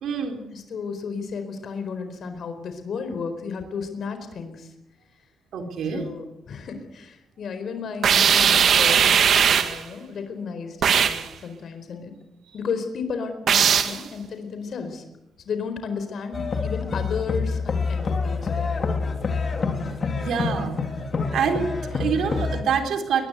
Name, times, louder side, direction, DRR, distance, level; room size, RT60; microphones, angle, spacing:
voice 1, 0.0-0.4 5.5-6.1 20.2-20.8 21.3-23.3, right 6 dB, 75° right, 5 dB, 4.2 m, -26 dB
voice 2, 0.5-4.7 5.9-9.1 9.4-12.1 12.5-15.0 15.4-18.7, left 5 dB, 55° left, 8 dB, 4.4 m, -33 dB
sound 1, 8.0-9.8 10.8-11.3 13.5-14.0, right 7 dB, 60° right, 2.1 m, -18 dB
sound 2, 16.3-22.6, left 4 dB, 35° left, 3.3 m, -27 dB
22.5 x 21.5 x 8.2 m, 0.89 s
wide cardioid pair, 165°, 0 cm